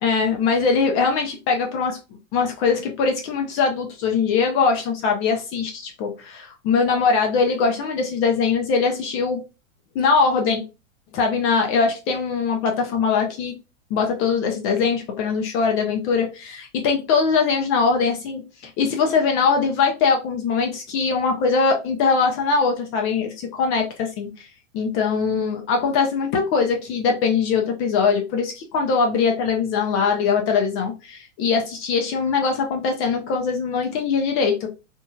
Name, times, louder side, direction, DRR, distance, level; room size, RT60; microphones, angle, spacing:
voice 1, 0.0-2.0 2.3-9.4 9.9-10.6 11.1-13.6 13.9-24.5 24.7-34.7, left 5 dB, 35° left, 2 dB, 0.6 m, -21 dB
2.9 x 2.6 x 2.2 m, 0.29 s
hypercardioid pair, 110°, 39 cm